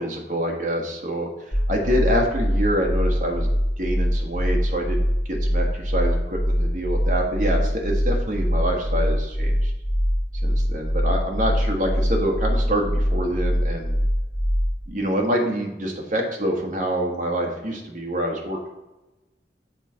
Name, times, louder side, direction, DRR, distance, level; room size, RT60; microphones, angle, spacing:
voice 1, 0.0-3.5 3.8-5.0 5.3-9.7 10.4-13.9 14.9-18.7, equal, 45° right, 1 dB, 1.4 m, -26 dB
sound 1, 1.5-14.9, equal, 40° left, 2.3 m, -23 dB
7.3 x 4.1 x 5.6 m, 1.0 s
head